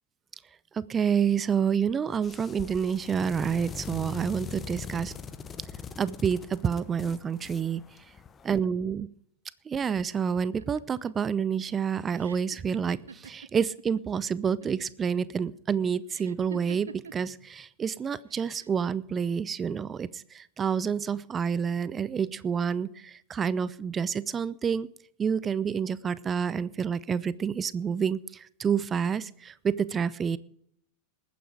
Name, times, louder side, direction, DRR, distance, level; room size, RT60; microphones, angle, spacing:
voice 1, 0.7-5.1 6.0-7.8 8.4-9.1 9.7-24.9 25.2-30.4, right 7 dB, 20° right, 19 dB, 0.6 m, -28 dB
sound 1, 2.1-8.6, left 6 dB, 20° left, 0.9 m, -42 dB
sound 2, 10.4-14.0 14.3-15.0 16.1-17.3 18.3-18.9, right 6 dB, 70° right, 0.7 m, -46 dB
20.5 x 9.5 x 5.0 m, 0.69 s
figure-of-eight pair, 90°, 0 cm